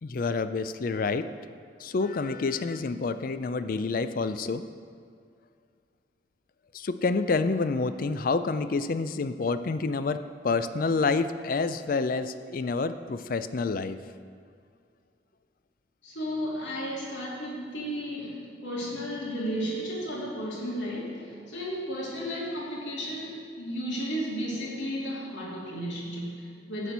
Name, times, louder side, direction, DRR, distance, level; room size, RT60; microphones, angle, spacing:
voice 1, 0.0-1.3 1.8-4.7 6.7-14.0, left 4 dB, 50° left, 11 dB, 0.4 m, -28 dB
voice 2, 16.0-26.9, equal, 80° left, -4 dB, 2.8 m, -33 dB
12.0 x 4.3 x 8.1 m, 2.2 s
head